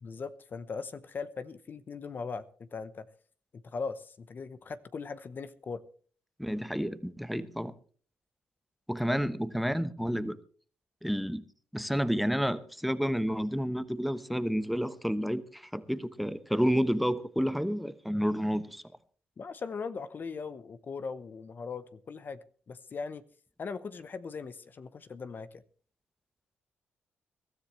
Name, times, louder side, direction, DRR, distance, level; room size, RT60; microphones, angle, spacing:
voice 1, 0.0-3.1 3.6-5.8 9.1-9.2 18.1-18.2 19.4-22.4 22.7-23.2 23.6-25.6, left 5 dB, 45° left, 0.9 m, -39 dB
voice 2, 6.4-7.7 8.9-10.4 11.0-11.4 11.7-18.8, equal, ahead, 1.0 m, -30 dB
22.5 x 13.0 x 3.2 m
cardioid pair, 80°, 5 cm